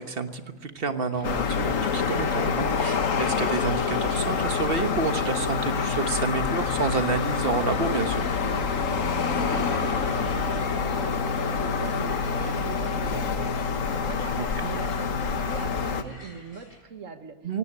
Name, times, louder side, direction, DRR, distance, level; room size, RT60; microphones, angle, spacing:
voice 1, 0.0-8.2 14.4-14.7 17.4-17.6, right 4 dB, 45° right, 8 dB, 1.4 m, -29 dB
sound 1, 1.1-13.2, left 1 dB, 15° left, 1.5 m, -41 dB
sound 2, 1.2-16.0, left 5 dB, 70° left, 1.5 m, -27 dB
sound 3, 7.9-16.8, left 2 dB, 90° left, 3.6 m, -50 dB
voice 2, 9.5-17.4, right 6 dB, 65° right, 9 dB, 1.6 m, -40 dB
18.0 x 17.5 x 9.9 m, 1.3 s
omnidirectional pair, 1.4 m